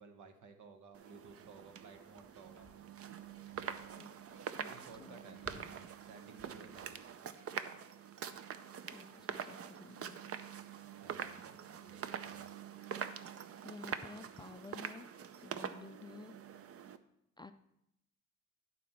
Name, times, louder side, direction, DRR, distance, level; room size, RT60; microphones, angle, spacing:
voice 1, 0.0-2.7 4.6-5.8 6.0-7.0 11.0-12.5, right 4 dB, 80° right, 7 dB, 1.1 m, -56 dB
Wind, 0.9-7.4, left 1 dB, ahead, 3.4 m, -64 dB
sound 1, 0.9-17.0, right 8 dB, 50° right, 0.6 m, -45 dB
voice 2, 4.5-5.8 8.9-10.2 13.6-15.1 15.4-16.4 17.4-17.5, left 3 dB, 15° left, 8 dB, 0.3 m, -52 dB
11.0 x 4.2 x 5.6 m, 0.80 s
cardioid pair, 90°, 30 cm